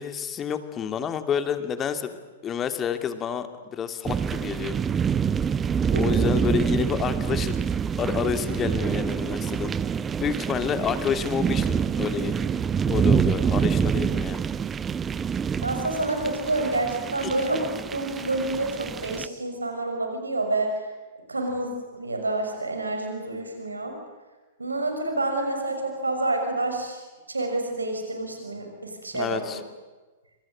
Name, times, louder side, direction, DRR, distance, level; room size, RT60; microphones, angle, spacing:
voice 1, 0.0-2.2 2.4-4.8 6.0-7.6 8.0-9.7 10.2-12.3 12.9-14.4 17.2-17.3 29.1-29.6, left 8 dB, 20° left, 9 dB, 2.5 m, -29 dB
sound 1, 4.1-19.3, right 7 dB, 15° right, 0.8 m, -26 dB
voice 2, 15.6-20.8 21.3-24.0 24.6-27.0 27.3-29.4, right 2 dB, 80° right, 4 dB, 6.3 m, -28 dB
27.5 x 26.5 x 7.9 m, 1.2 s
figure-of-eight pair, 105°, 0 cm